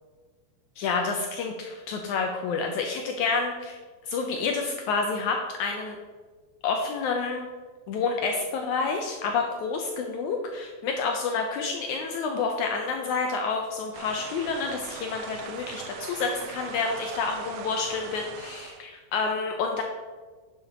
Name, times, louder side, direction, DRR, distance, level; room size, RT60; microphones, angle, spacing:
voice 1, 0.8-3.8 4.1-6.0 6.6-7.5 7.9-19.8, left 4 dB, 80° left, 3 dB, 1.7 m, -29 dB
sound 1, 13.9-18.9, right 8 dB, 80° right, 1.9 m, -41 dB
9.6 x 7.0 x 4.2 m, 1.4 s
omnidirectional pair, 4.3 m